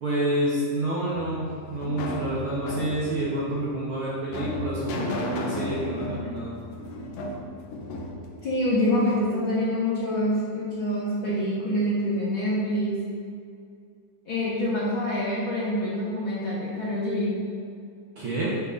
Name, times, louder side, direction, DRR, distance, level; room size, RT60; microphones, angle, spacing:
voice 1, 0.0-6.6 18.2-18.6, right 1 dB, 55° right, -7 dB, 1.6 m, -28 dB
sound 1, 1.1-9.3, left 1 dB, 70° left, 1.4 m, -35 dB
voice 2, 8.4-13.0 14.3-17.5, left 1 dB, 50° left, -8 dB, 1.8 m, -26 dB
12.0 x 7.1 x 2.7 m, 2.3 s
omnidirectional pair, 3.7 m